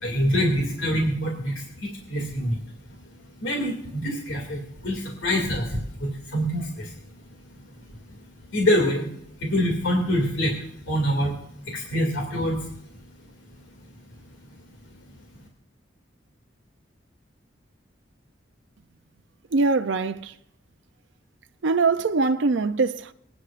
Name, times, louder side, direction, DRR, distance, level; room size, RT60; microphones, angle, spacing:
voice 1, 0.0-2.6 2.9-3.0 3.4-7.7 8.1-8.2 8.5-9.1 9.4-11.4 11.6-12.7, equal, 85° left, 2.5 m, -26 dB
voice 2, 19.5-20.3 21.6-23.1, right 3 dB, 70° right, 0.5 m, -22 dB
25.5 x 9.8 x 2.5 m
head